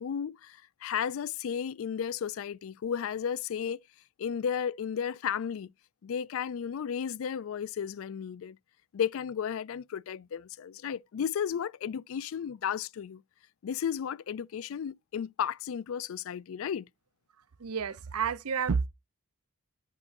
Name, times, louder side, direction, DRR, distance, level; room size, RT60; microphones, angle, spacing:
voice 1, 0.0-3.8 4.2-5.7 6.0-8.6 8.9-13.2 13.6-16.9, left 8 dB, 65° left, 0.3 m, -33 dB
voice 2, 17.6-18.9, right 6 dB, 90° right, 0.6 m, -30 dB
8.3 x 5.2 x 2.6 m
head